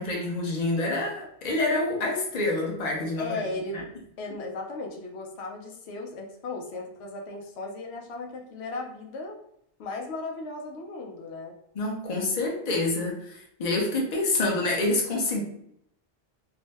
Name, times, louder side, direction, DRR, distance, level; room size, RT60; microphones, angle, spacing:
voice 1, 0.0-3.4 11.8-15.4, left 2 dB, 45° left, -2 dB, 0.8 m, -27 dB
voice 2, 3.2-3.9 4.2-9.4 9.8-11.5, left 2 dB, 90° left, 1 dB, 0.8 m, -36 dB
2.7 x 2.0 x 3.2 m, 0.73 s
omnidirectional pair, 1.0 m